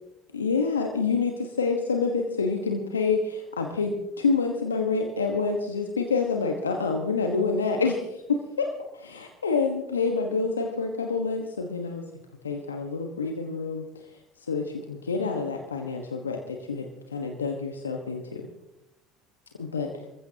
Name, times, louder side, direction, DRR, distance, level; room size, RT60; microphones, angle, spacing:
voice 1, 0.3-12.0 12.4-18.5 19.6-20.1, left 4 dB, 90° left, 3 dB, 1.4 m, -28 dB
26.0 x 15.0 x 2.9 m, 0.86 s
hypercardioid pair, 65°, 0 cm